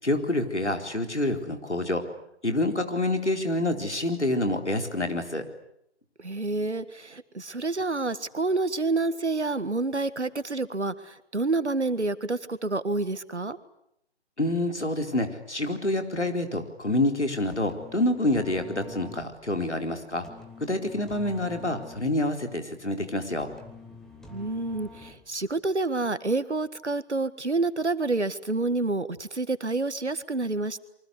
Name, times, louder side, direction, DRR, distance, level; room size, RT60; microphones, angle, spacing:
voice 1, 0.0-2.1 2.4-5.5 14.4-20.3 20.6-23.5, left 1 dB, 85° left, 5 dB, 4.3 m, -27 dB
voice 2, 6.2-13.6 24.3-30.8, right 3 dB, 80° right, 14 dB, 1.9 m, -28 dB
sound 1, 17.5-25.5, left 3 dB, ahead, 1.4 m, -47 dB
28.0 x 24.0 x 8.2 m, 0.76 s
figure-of-eight pair, 140°, 34 cm